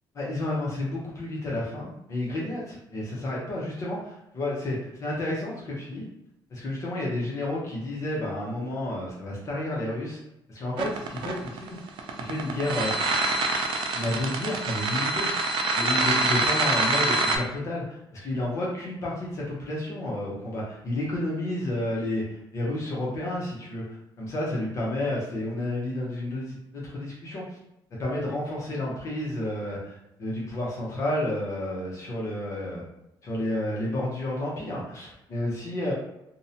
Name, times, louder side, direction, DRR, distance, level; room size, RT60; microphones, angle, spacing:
voice 1, 0.2-6.0 6.5-10.2 10.5-11.8 12.2-12.9 13.9-15.3 15.7-23.8 24.2-27.4 28.0-32.8 33.2-35.9, left 1 dB, 35° left, -5 dB, 0.6 m, -31 dB
sound 1, 10.8-17.4, right 3 dB, 65° right, 0.4 m, -25 dB
2.6 x 2.1 x 2.6 m, 0.86 s
cardioid pair, 165°, 9 cm